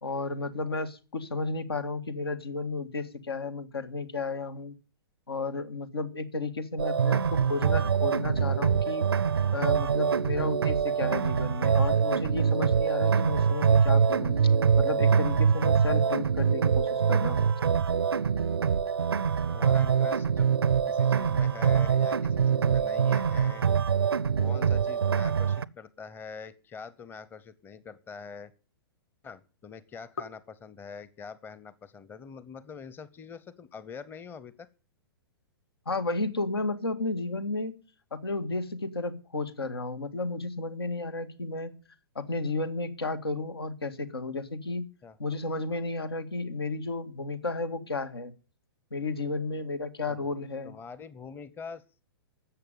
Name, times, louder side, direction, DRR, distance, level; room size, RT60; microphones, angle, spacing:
voice 1, 0.0-4.7 5.3-9.0 9.5-14.4 14.8-17.5 35.9-37.8 38.1-41.7 42.2-44.9 45.2-48.3 48.9-50.7, left 3 dB, 80° left, 10 dB, 2.0 m, -33 dB
sound 1, 6.8-25.6, right 6 dB, 80° right, 0.6 m, -24 dB
voice 2, 19.5-20.5 20.9-23.6 24.4-28.5 29.2-34.7 45.0-45.2 50.1-50.2 50.6-51.8, left 6 dB, 15° left, 17 dB, 0.9 m, -44 dB
13.5 x 7.9 x 9.2 m, 0.36 s
figure-of-eight pair, 115°, 13 cm